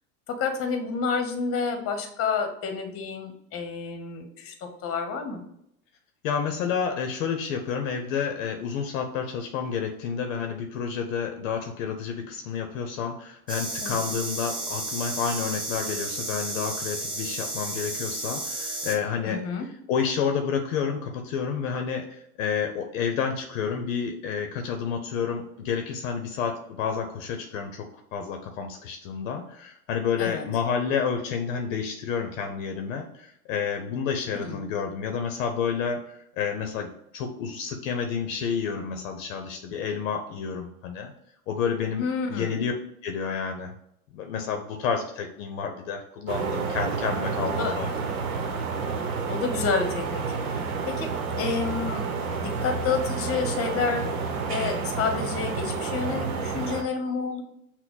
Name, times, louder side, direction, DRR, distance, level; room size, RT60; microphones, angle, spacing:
voice 1, 0.3-5.4 13.8-14.0 19.2-19.7 30.2-30.5 34.4-34.6 41.9-42.6 47.4-47.7 49.3-50.2 50.5-51.1 51.4-52.0 52.4-54.1 54.5-57.4, left 5 dB, 30° left, 6 dB, 1.0 m, -29 dB
voice 2, 6.2-19.5 19.9-41.1 41.5-42.7 43.0-43.7 44.1-47.9, left 6 dB, 60° left, 5 dB, 0.7 m, -30 dB
sound 1, 13.5-19.0, right 2 dB, 10° right, 0.7 m, -32 dB
sound 2, 46.3-56.8, right 5 dB, 70° right, 0.9 m, -30 dB
5.9 x 2.2 x 3.9 m, 0.75 s
hypercardioid pair, 95°, 44 cm